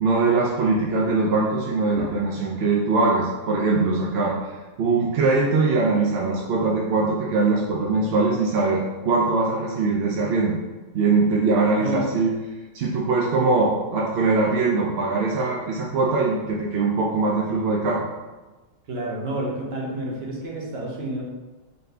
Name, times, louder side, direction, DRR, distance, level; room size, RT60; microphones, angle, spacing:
voice 1, 0.0-4.4 4.8-10.6 10.9-12.3 12.7-18.0, right 3 dB, 65° right, -3 dB, 0.6 m, -22 dB
voice 2, 18.9-21.2, right 1 dB, 50° right, -3 dB, 1.0 m, -29 dB
4.2 x 2.7 x 3.3 m, 1.2 s
omnidirectional pair, 1.6 m